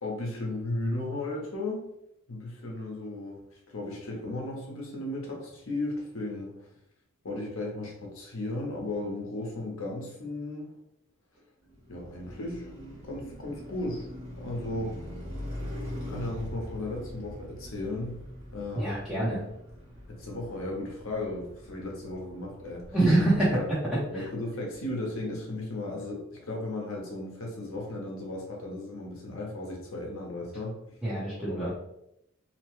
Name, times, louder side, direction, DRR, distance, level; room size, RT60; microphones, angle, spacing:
voice 1, 0.0-1.8 2.3-3.4 3.7-6.7 7.2-10.7 11.9-12.7 13.0-14.1 14.4-14.9 16.1-18.2 18.5-19.0 20.1-22.8 23.5-23.7 24.1-30.8 31.4-31.7, left 2 dB, 75° left, -1 dB, 0.8 m, -35 dB
Car passing by, 11.6-23.9, left 1 dB, 60° right, 1.1 m, -42 dB
voice 2, 18.8-19.4 22.9-23.6 24.1-24.2 31.0-31.7, right 1 dB, 5° right, -10 dB, 0.7 m, -25 dB
2.9 x 2.1 x 3.0 m, 0.80 s
head